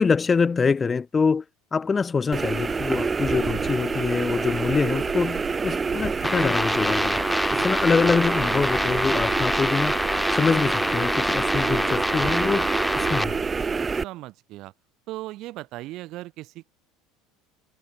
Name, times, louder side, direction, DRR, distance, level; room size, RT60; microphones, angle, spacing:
voice 1, 0.0-1.4 1.7-7.2 7.6-10.0 10.3-13.3, left 5 dB, 20° left, 1.0 m, -24 dB
sound 1, 2.3-14.0, right 4 dB, 20° right, 0.9 m, -27 dB
sound 2, 6.2-13.2, left 1 dB, 5° left, 0.4 m, -26 dB
sound 3, 10.6-13.5, right 20 dB, 90° right, 3.2 m, -44 dB
voice 2, 13.9-14.7 15.1-16.7, right 17 dB, 55° right, 1.2 m, -38 dB
supercardioid pair, 130°, 0 cm